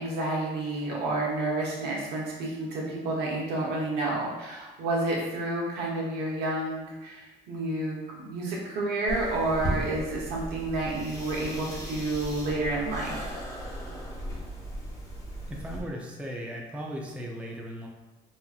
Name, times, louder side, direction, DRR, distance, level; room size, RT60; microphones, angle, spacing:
voice 1, 0.0-13.3, right 2 dB, 75° right, -3 dB, 1.0 m, -30 dB
sound 1, 9.1-15.8, equal, 20° left, 1.0 m, -36 dB
voice 2, 15.5-17.9, equal, 5° right, -1 dB, 0.5 m, -37 dB
4.2 x 2.5 x 2.4 m, 1.1 s
cardioid pair, 110°, 17 cm